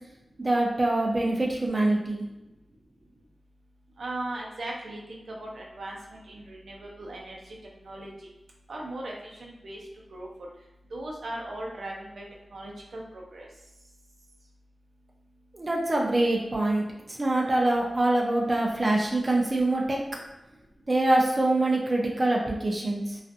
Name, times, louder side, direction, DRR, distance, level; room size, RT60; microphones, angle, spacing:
voice 1, 0.4-2.2 15.5-20.0 20.9-23.2, right 2 dB, 35° right, -2 dB, 0.5 m, -25 dB
voice 2, 4.0-7.6 7.8-8.1 8.7-9.8 10.1-10.3 10.9-12.2 12.5-13.5, right 1 dB, 80° right, -2 dB, 0.5 m, -38 dB
2.5 x 2.4 x 2.4 m, 0.96 s
wide cardioid pair, 95°, 0 cm